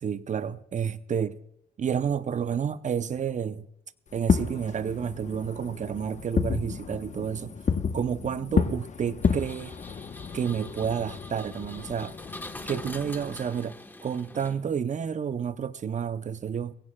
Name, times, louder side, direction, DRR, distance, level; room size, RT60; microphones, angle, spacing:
voice 1, 0.0-1.4 1.8-3.7 4.1-7.5 7.9-9.8 10.3-12.2 12.7-16.7, right 7 dB, 40° right, 0.6 m, -30 dB
Fireworks, 4.1-13.4, left 6 dB, 35° left, 0.9 m, -31 dB
Engine, 9.2-14.9, left 1 dB, 10° left, 1.1 m, -44 dB
22.0 x 16.5 x 2.3 m
cardioid pair, 90°, 20 cm